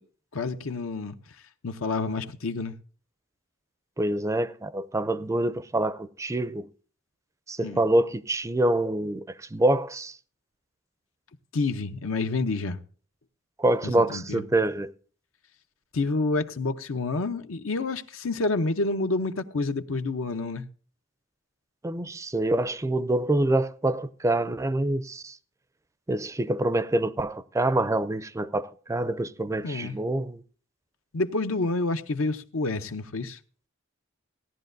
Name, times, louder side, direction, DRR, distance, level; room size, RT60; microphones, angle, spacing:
voice 1, 0.3-1.2 1.6-2.7 7.6-7.8 11.5-12.8 13.8-14.4 15.9-20.6 29.6-30.0 31.1-33.4, left 3 dB, 80° left, 0.8 m, -28 dB
voice 2, 4.0-6.7 7.5-10.1 13.6-14.9 21.8-25.4 26.1-30.4, right 1 dB, 15° right, 0.4 m, -26 dB
17.0 x 11.0 x 2.6 m
head